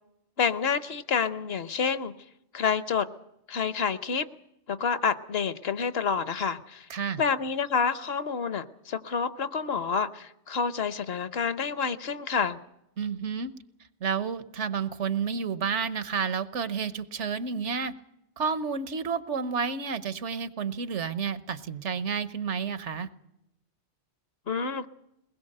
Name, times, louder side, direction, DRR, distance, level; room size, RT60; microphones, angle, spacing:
voice 1, 0.4-2.1 2.5-3.1 3.5-4.3 4.7-6.9 7.2-12.6 24.5-24.9, left 6 dB, 65° left, 13 dB, 1.2 m, -28 dB
voice 2, 6.9-7.2 13.0-13.5 14.0-17.9 18.4-23.1, right 6 dB, 85° right, 13 dB, 1.3 m, -30 dB
23.0 x 20.0 x 6.6 m, 0.86 s
omnidirectional pair, 1.2 m